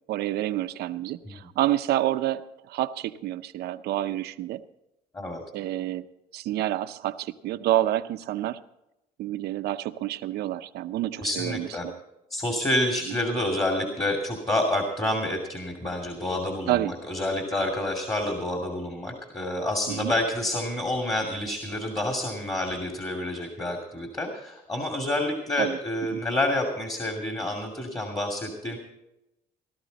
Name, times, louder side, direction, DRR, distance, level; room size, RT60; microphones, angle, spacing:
voice 1, 0.1-4.6 5.5-6.1 6.3-8.6 9.2-12.0 16.7-16.9 19.9-20.1 25.6-25.8 26.1-26.2, right 13 dB, 75° right, 9 dB, 0.7 m, -28 dB
voice 2, 11.2-11.9 12.3-28.8, left 1 dB, 20° left, 2 dB, 2.6 m, -28 dB
17.5 x 13.0 x 4.1 m, 0.87 s
cardioid pair, 110°, 17 cm